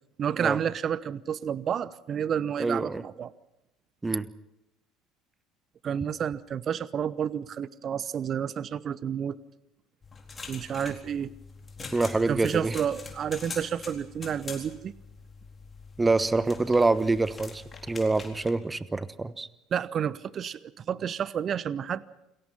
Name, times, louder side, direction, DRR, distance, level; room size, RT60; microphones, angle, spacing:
voice 1, 0.2-3.3 5.8-9.4 10.5-11.3 12.3-14.9 19.7-22.0, right 8 dB, 35° right, 20 dB, 0.9 m, -30 dB
voice 2, 2.6-3.0 4.0-4.3 11.9-12.7 16.0-19.5, right 3 dB, 15° right, 17 dB, 1.2 m, -26 dB
sound 1, 10.0-18.5, left 4 dB, 25° left, 4.0 m, -44 dB
29.0 x 21.0 x 5.7 m, 0.92 s
figure-of-eight pair, 60°, 0 cm